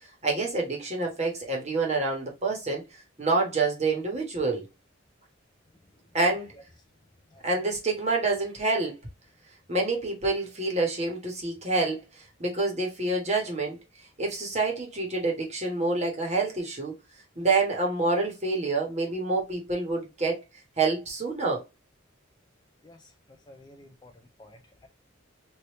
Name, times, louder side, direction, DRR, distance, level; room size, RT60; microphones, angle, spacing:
voice 1, 0.2-2.8 3.2-4.7 6.1-6.5 7.4-9.0 9.7-13.8 14.2-16.9 17.4-20.4 20.8-21.6, right 3 dB, 30° right, 1.2 m, -27 dB
voice 2, 23.5-24.1 24.4-24.9, left 2 dB, 20° left, 0.4 m, -51 dB
3.2 x 2.6 x 3.0 m
head